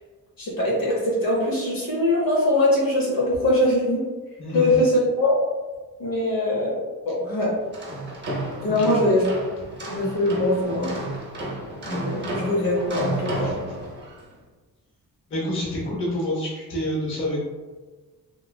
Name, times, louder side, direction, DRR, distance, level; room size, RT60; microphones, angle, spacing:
voice 1, 0.4-4.0 4.5-5.4 6.0-6.8 7.0-7.6 8.6-9.3 9.9-10.9 11.9-13.6, left 1 dB, 65° left, -6 dB, 0.8 m, -22 dB
voice 2, 4.4-4.7 7.3-7.4 8.7-9.0 13.4-13.6 15.3-17.4, left 1 dB, 35° left, -5 dB, 0.6 m, -28 dB
sound 1, 7.6-14.3, right 1 dB, 30° right, 0.6 m, -32 dB
3.1 x 2.2 x 2.2 m, 1.3 s
wide cardioid pair, 160°, 37 cm